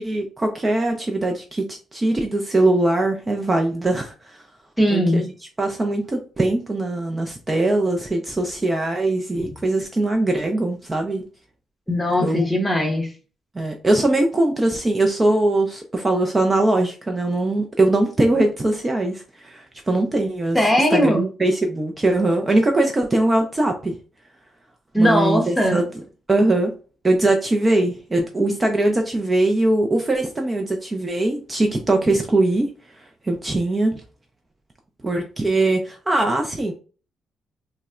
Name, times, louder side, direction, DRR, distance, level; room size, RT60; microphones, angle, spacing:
voice 1, 0.0-4.4 4.9-5.2 5.6-11.2 12.2-12.4 13.5-20.6 20.9-23.9 25.0-25.9 26.3-26.7 27.0-32.7 33.0-34.0 35.0-36.7, right 2 dB, 25° right, 3 dB, 0.5 m, -21 dB
voice 2, 4.8-5.3 11.9-13.1 20.5-21.2 24.9-25.8, equal, 5° left, 2 dB, 1.0 m, -19 dB
3.9 x 2.1 x 2.4 m, 0.36 s
cardioid pair, 90°, 0 cm